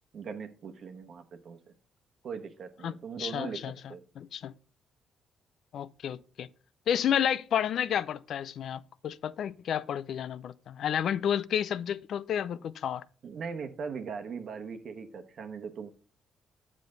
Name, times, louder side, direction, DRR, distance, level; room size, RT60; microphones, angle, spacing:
voice 1, 0.1-1.6 2.2-4.0 13.2-15.9, right 6 dB, 60° right, 1.1 m, -40 dB
voice 2, 2.8-3.7 4.2-4.5 5.7-6.5 6.9-13.0, left 9 dB, 65° left, 0.4 m, -31 dB
7.6 x 7.4 x 3.8 m
cardioid pair, 90°, 0 cm